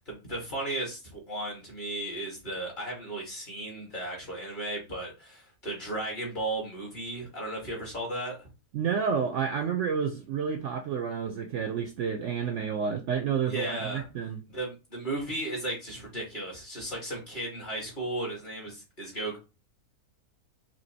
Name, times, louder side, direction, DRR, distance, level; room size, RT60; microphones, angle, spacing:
voice 1, 0.1-8.5 13.5-14.1 14.5-19.4, right 1 dB, 35° left, 1.7 m, -35 dB
voice 2, 8.7-14.4, right 7 dB, 65° right, 0.8 m, -30 dB
4.4 x 2.8 x 2.7 m
omnidirectional pair, 1.6 m